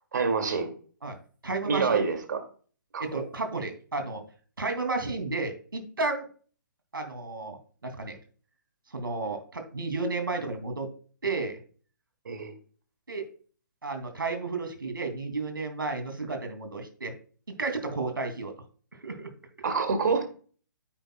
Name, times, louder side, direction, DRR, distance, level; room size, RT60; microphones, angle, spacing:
voice 1, 0.1-0.7 1.7-2.4 2.9-3.0 12.3-12.5 19.6-20.3, right 5 dB, 60° right, 6 dB, 2.2 m, -26 dB
voice 2, 1.4-2.0 3.0-4.2 4.6-6.3 6.9-7.6 7.8-8.2 8.9-10.9 11.2-11.6 13.1-13.3 13.8-17.1 17.5-18.5 19.0-19.3, right 3 dB, 80° right, 6 dB, 2.4 m, -32 dB
9.5 x 8.8 x 2.2 m, 0.41 s
figure-of-eight pair, 135°, 11 cm